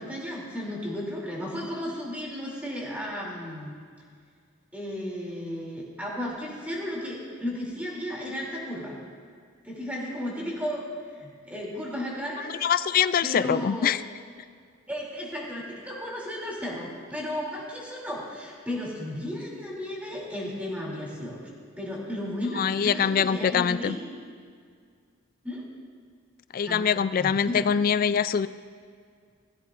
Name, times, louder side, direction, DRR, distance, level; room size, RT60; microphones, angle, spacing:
voice 1, 0.0-3.7 4.7-9.0 9.6-10.8 11.2-12.6 13.2-13.9 14.9-21.4 21.8-24.0 25.4-25.6 26.6-26.9 27.2-27.6, left 1 dB, 5° right, -4 dB, 2.8 m, -34 dB
voice 2, 12.6-14.0 22.5-24.0 26.5-28.5, left 7 dB, 45° left, 15 dB, 0.3 m, -24 dB
17.5 x 15.0 x 2.5 m, 2.1 s
head